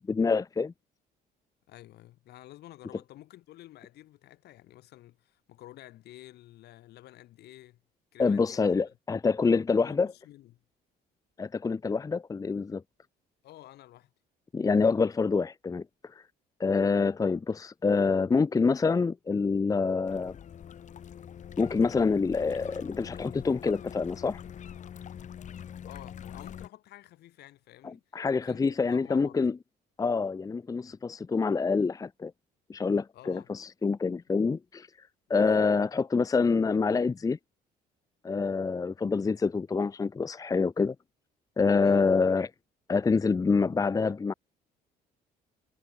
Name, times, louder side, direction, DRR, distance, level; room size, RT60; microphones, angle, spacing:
voice 1, 0.1-0.7 8.2-10.1 11.4-12.8 14.5-15.8 16.6-20.4 21.6-24.4 27.8-29.5 30.0-32.3 32.7-34.9 35.3-37.4 38.2-40.9 41.6-42.5 42.9-44.3, left 4 dB, 20° left, 0.7 m, -26 dB
voice 2, 1.7-7.8 8.1-8.7 9.8-10.6 13.4-14.1 25.8-29.4 33.1-33.5 35.3-35.7 41.7-42.0, left 15 dB, 75° left, 6.7 m, -51 dB
sound 1, 20.1-26.7, left 8 dB, 45° left, 2.8 m, -44 dB
cardioid pair, 110°, 17 cm